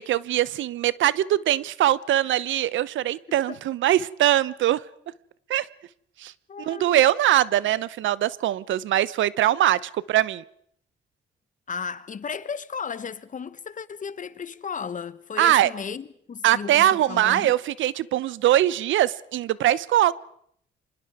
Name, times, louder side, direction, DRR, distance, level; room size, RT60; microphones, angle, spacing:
voice 1, 0.0-4.8 5.5-5.7 6.2-6.3 6.7-10.4 15.4-15.7 16.4-20.1, right 13 dB, 75° right, 0.8 m, -22 dB
voice 2, 6.5-6.9 11.7-17.5, left 6 dB, 40° left, 1.2 m, -35 dB
27.5 x 25.0 x 4.9 m
cardioid pair, 90°, 20 cm